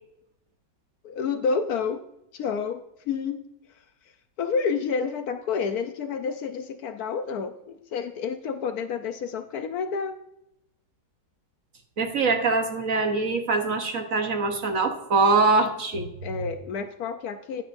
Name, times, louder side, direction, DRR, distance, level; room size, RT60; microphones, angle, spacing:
voice 1, 1.0-2.0 2.3-3.5 4.4-10.2 16.2-17.6, left 5 dB, 70° left, 8 dB, 1.0 m, -29 dB
voice 2, 12.0-16.1, right 3 dB, 55° right, 5 dB, 1.3 m, -23 dB
10.5 x 9.7 x 2.6 m, 0.79 s
omnidirectional pair, 1.9 m